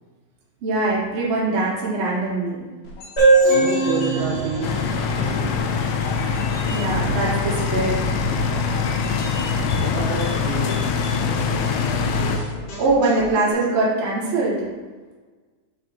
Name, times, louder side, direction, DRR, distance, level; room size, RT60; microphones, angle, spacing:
voice 1, 0.6-2.6 6.7-8.0 11.8-11.9 12.8-14.6, right 2 dB, 60° right, -7 dB, 1.3 m, -22 dB
sound 1, 2.8-13.5, left 1 dB, 65° left, 2.4 m, -38 dB
sound 2, 3.2-6.7, right 3 dB, 50° left, 0.7 m, -21 dB
voice 2, 3.5-4.7 5.1-6.1 9.8-11.0 11.4-11.7, right 4 dB, 85° right, -1 dB, 2.6 m, -30 dB
sound 3, 4.6-12.4, left 5 dB, 85° left, 3.0 m, -23 dB
7.3 x 6.4 x 3.1 m, 1.4 s
omnidirectional pair, 5.6 m